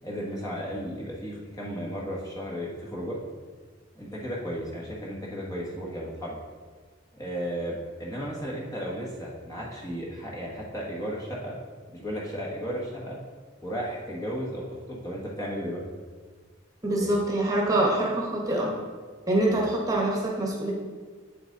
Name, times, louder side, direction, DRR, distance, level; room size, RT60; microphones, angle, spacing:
voice 1, 0.0-3.2 4.0-6.4 7.1-11.5 11.9-13.2 13.6-15.8 17.0-17.1 19.5-19.7, equal, 20° left, -4 dB, 1.4 m, -34 dB
voice 2, 16.8-18.7 19.3-20.7, right 1 dB, 20° right, -2 dB, 1.3 m, -25 dB
8.6 x 6.0 x 3.9 m, 1.5 s
head